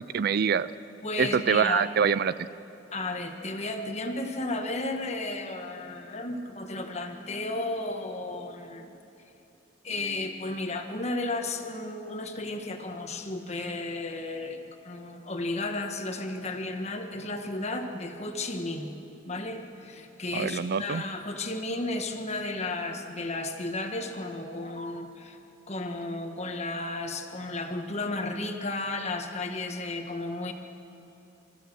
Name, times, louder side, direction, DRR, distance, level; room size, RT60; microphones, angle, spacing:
voice 1, 0.1-0.7 1.2-2.3 20.3-21.0, right 6 dB, 50° right, 16 dB, 0.4 m, -25 dB
voice 2, 1.0-1.9 2.9-9.0 9.8-18.9 19.2-25.4 25.7-30.5, left 2 dB, 35° left, 5 dB, 1.5 m, -33 dB
26.0 x 14.0 x 7.7 m, 2.8 s
head